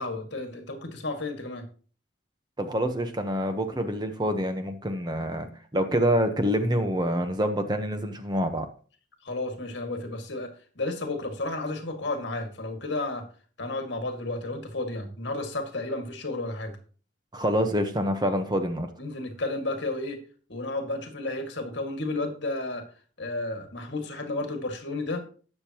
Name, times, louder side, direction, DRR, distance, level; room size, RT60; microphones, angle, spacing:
voice 1, 0.0-1.7 9.2-13.3 13.6-16.8 19.0-20.2 20.5-22.9 23.2-25.2, left 2 dB, 65° left, 5 dB, 2.1 m, -32 dB
voice 2, 2.6-8.7 17.3-18.9, equal, 20° right, 7 dB, 1.0 m, -26 dB
18.5 x 6.8 x 3.0 m, 0.40 s
head